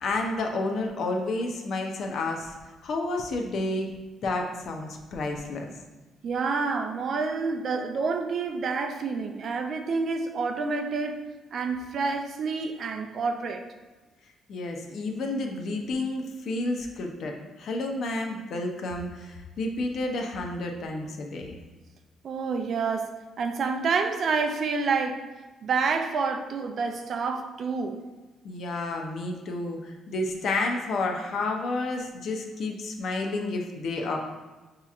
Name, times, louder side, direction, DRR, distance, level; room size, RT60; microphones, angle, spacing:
voice 1, 0.0-2.6 2.8-3.9 4.2-5.7 14.5-21.6 28.4-34.2, left 2 dB, 55° left, 2 dB, 0.6 m, -30 dB
voice 2, 6.2-11.2 11.5-13.6 22.2-25.2 25.6-28.0, right 4 dB, 45° right, 6 dB, 0.4 m, -28 dB
6.9 x 2.9 x 2.4 m, 1.2 s
cardioid pair, 160°, 0 cm